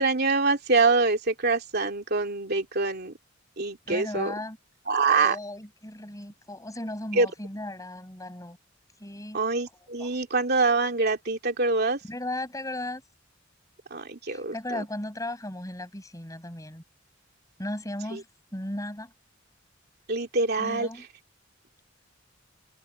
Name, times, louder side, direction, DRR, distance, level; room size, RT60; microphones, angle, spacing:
voice 1, 0.0-3.1 3.6-4.3 4.9-5.4 7.1-7.3 9.3-12.0 13.9-14.8 18.1-18.2 20.1-20.9, right 3 dB, 55° right, 2.8 m, -25 dB
voice 2, 3.9-4.6 5.1-8.6 9.0-9.4 10.0-10.1 12.1-13.0 14.3-16.8 17.6-18.3 18.5-19.1 20.6-21.0, left 1 dB, 15° left, 6.3 m, -36 dB
head